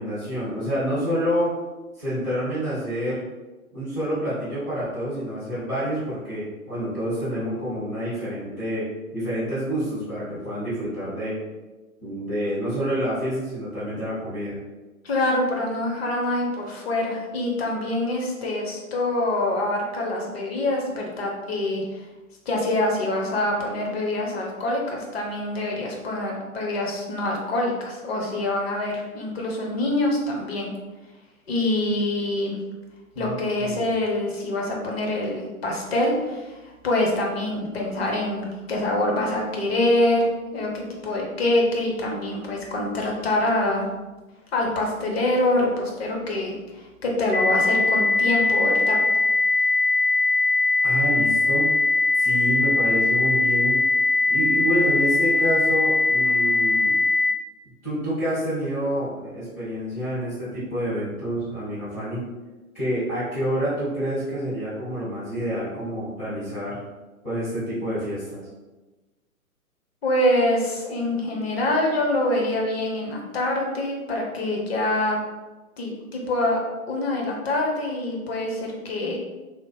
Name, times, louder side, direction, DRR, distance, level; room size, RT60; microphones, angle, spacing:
voice 1, 0.0-1.6 2.0-3.2 3.7-8.9 9.1-11.3 12.0-14.6 33.1-33.8 50.8-51.7 52.2-53.8 54.3-56.9 57.8-62.2 62.7-66.8 67.2-68.4, equal, 5° left, -14 dB, 0.4 m, -28 dB
voice 2, 15.0-22.1 22.5-30.7 31.5-32.6 33.2-40.3 40.5-43.9 44.5-49.0 70.0-75.2 75.8-76.6 76.9-79.2, left 1 dB, 45° left, -1 dB, 0.7 m, -25 dB
sound 1, 47.3-57.3, left 3 dB, 80° left, 0.6 m, -21 dB
2.9 x 2.0 x 3.2 m, 1.1 s
figure-of-eight pair, 120°, 43 cm